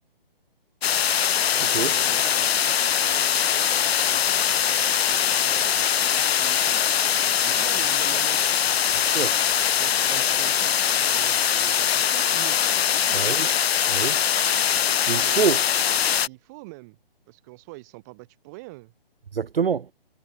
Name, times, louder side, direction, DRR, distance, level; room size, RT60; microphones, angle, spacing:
sound 1, 0.8-16.3, left 9 dB, 85° left, 0.5 m, -22 dB
voice 1, 1.5-6.8 7.2-12.6 12.8-13.2 15.2-15.7 16.3-17.0 17.3-18.9, right 25 dB, 15° right, 3.8 m, -44 dB
voice 2, 13.1-13.5 13.9-14.2 15.1-15.6 19.3-19.9, right 6 dB, 70° right, 1.1 m, -25 dB
hypercardioid pair, 170°, 30 cm